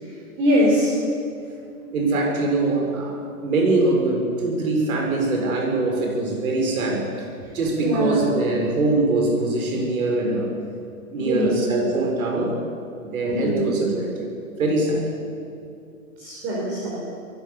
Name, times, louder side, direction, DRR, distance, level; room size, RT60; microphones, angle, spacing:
voice 1, 0.0-1.0 7.8-8.3 11.2-11.9 13.4-14.0 16.2-17.0, equal, 25° right, -4 dB, 4.6 m, -23 dB
voice 2, 1.9-7.1 7.5-10.5 11.1-12.6 13.0-13.9 14.2-14.3 14.6-15.0, right 2 dB, 65° right, 1 dB, 6.5 m, -23 dB
23.5 x 15.5 x 7.2 m, 2.5 s
hypercardioid pair, 135°, 45 cm